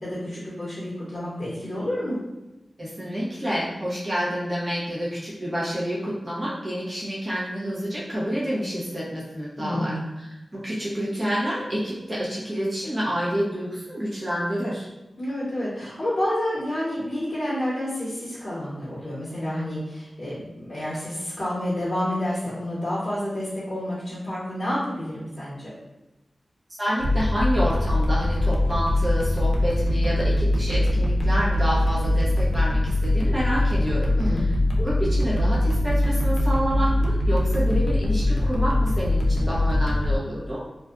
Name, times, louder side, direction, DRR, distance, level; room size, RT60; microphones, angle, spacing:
voice 1, 0.0-2.2 9.6-10.1 15.2-25.7 34.2-34.5, left 1 dB, 40° left, -9 dB, 0.9 m, -29 dB
voice 2, 2.8-10.3 10.5-14.9 26.8-34.1 34.8-40.6, equal, 30° right, -8 dB, 0.8 m, -28 dB
sound 1, 27.0-40.2, left 1 dB, 90° left, 0.4 m, -22 dB
2.5 x 2.2 x 2.4 m, 1.0 s
wide cardioid pair, 60°, 0 cm